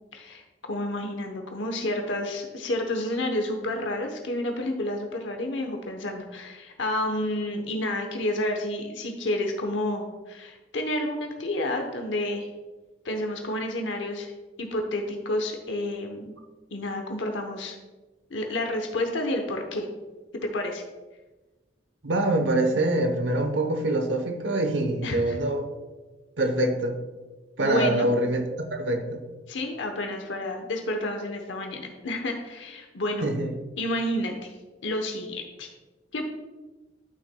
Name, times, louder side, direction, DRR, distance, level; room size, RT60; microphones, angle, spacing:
voice 1, 0.1-0.4 0.7-12.5 13.0-14.3 14.6-16.3 16.7-17.8 18.3-19.9 20.4-20.8 25.0-25.4 27.6-28.1 29.5-33.3 33.8-34.5 34.8-35.7 36.1-36.3, left 1 dB, 85° left, 3 dB, 0.9 m, -30 dB
voice 2, 22.0-25.7 26.4-27.0 27.6-29.2 33.2-33.5, right 1 dB, 80° right, 6 dB, 0.9 m, -25 dB
11.5 x 6.2 x 2.2 m, 1.2 s
head